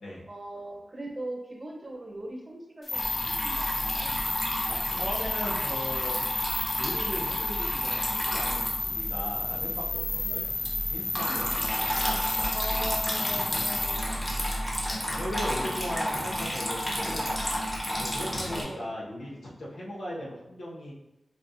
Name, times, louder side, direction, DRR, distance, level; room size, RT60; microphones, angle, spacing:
voice 1, 0.3-4.1 10.2-10.5 11.1-11.5 12.5-14.4 15.6-16.1 18.4-18.9, right 1 dB, 30° right, 0 dB, 0.9 m, -40 dB
sound 1, 2.9-14.0, left 2 dB, 55° left, 0.6 m, -32 dB
Water tap faucet / Trickle dribble, 2.9-18.6, equal, 20° left, 1.2 m, -32 dB
voice 2, 4.7-6.1 6.7-10.5 10.9-11.7 15.1-17.7 18.0-20.9, equal, 90° left, -6 dB, 1.2 m, -38 dB
6.5 x 2.4 x 2.6 m, 0.91 s
wide cardioid pair, 70°, 0 cm